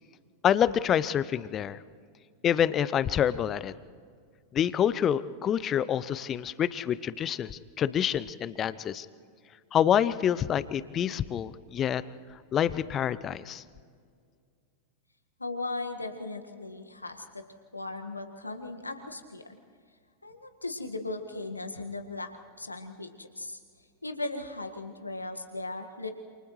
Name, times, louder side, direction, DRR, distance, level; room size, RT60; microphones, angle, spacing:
voice 1, 0.4-1.8 2.4-3.7 4.5-9.1 9.7-12.0 12.5-13.6, left 9 dB, 30° left, 17 dB, 0.7 m, -27 dB
voice 2, 15.4-17.4 17.7-19.6 20.2-22.3 22.6-23.6 24.0-26.1, left 2 dB, 80° left, 5 dB, 1.7 m, -37 dB
28.5 x 28.5 x 3.2 m, 2.1 s
figure-of-eight pair, 90°, 0 cm